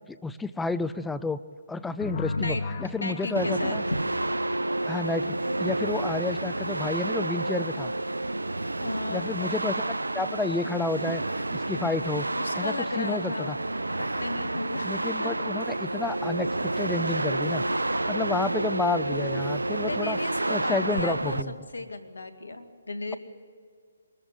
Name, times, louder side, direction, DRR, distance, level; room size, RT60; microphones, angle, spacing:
voice 1, 0.1-1.4 1.7-3.8 4.9-7.9 9.1-9.7 10.1-11.2 11.5-12.3 12.5-13.6 14.8-17.6 18.1-20.2 20.5-21.6, left 3 dB, 5° left, 12 dB, 0.5 m, -30 dB
sound 1, 2.0-4.9, left 3 dB, 40° left, 1.4 m, -35 dB
voice 2, 3.0-4.0 8.7-9.5 12.2-13.6 14.0-15.4 19.8-21.4 21.7-23.2, left 2 dB, 75° left, 8 dB, 2.1 m, -35 dB
sound 2, 3.3-21.4, right 2 dB, 85° right, 0.6 m, -29 dB
22.0 x 14.0 x 9.6 m, 2.1 s
figure-of-eight pair, 140°, 0 cm